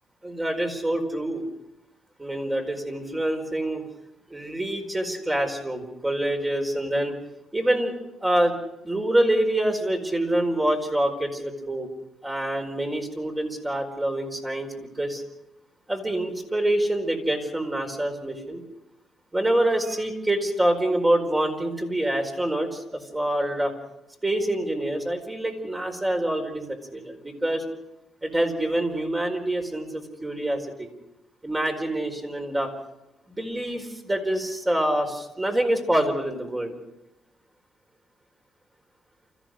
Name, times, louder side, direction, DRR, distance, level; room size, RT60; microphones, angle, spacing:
voice 1, 0.2-1.5 2.2-3.9 4.3-7.1 7.5-7.9 8.2-8.6 8.8-11.9 12.2-15.2 15.9-18.6 19.3-23.7 24.2-27.6 28.2-30.9 31.4-32.7 33.3-36.7, right 1 dB, 15° right, 4 dB, 4.6 m, -26 dB
29.0 x 15.0 x 6.5 m, 0.92 s
cardioid pair, 90°, 0 cm